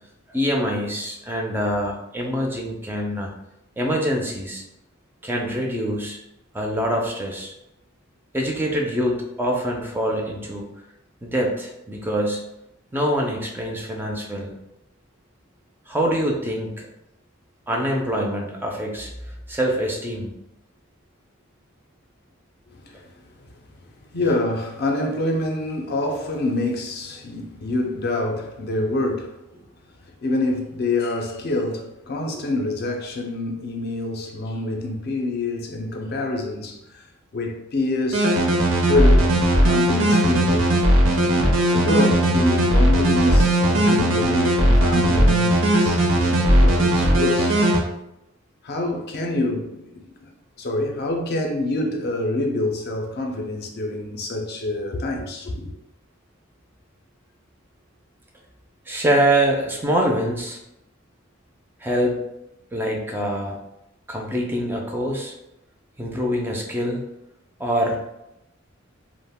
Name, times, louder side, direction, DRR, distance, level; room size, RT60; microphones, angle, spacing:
voice 1, 0.3-3.3 3.8-4.6 5.2-6.2 6.5-7.5 8.3-10.7 11.2-12.4 12.9-14.5 15.9-16.9 17.7-20.3 58.9-60.6 61.8-62.2 62.7-63.6 64.1-65.3 66.0-67.0 67.6-68.0, equal, 10° right, 0.3 m, -24 dB
voice 2, 22.7-23.4 24.1-29.4 30.2-37.1 37.3-38.4 38.9-39.3 39.6-40.7 41.7-47.6 48.6-50.3 50.6-55.7, left 2 dB, 55° left, 0.4 m, -26 dB
sound 1, 38.1-47.8, right 1 dB, 80° right, 0.6 m, -18 dB
2.3 x 2.0 x 3.4 m
head